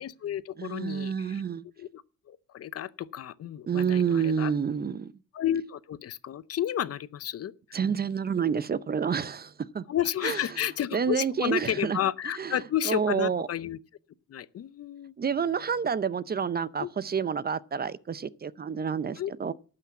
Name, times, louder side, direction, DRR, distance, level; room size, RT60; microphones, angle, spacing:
voice 1, 0.0-1.4 1.8-2.0 2.3-4.5 5.3-7.5 9.9-13.8 14.3-15.1 16.8-16.9 19.2-19.3, left 10 dB, 55° left, 0.7 m, -32 dB
voice 2, 0.6-1.6 3.7-5.1 7.7-9.8 10.2-10.4 10.9-12.0 12.4-13.5 15.2-19.5, right 6 dB, 30° right, 0.6 m, -29 dB
12.0 x 6.0 x 8.1 m
cardioid pair, 90°, 30 cm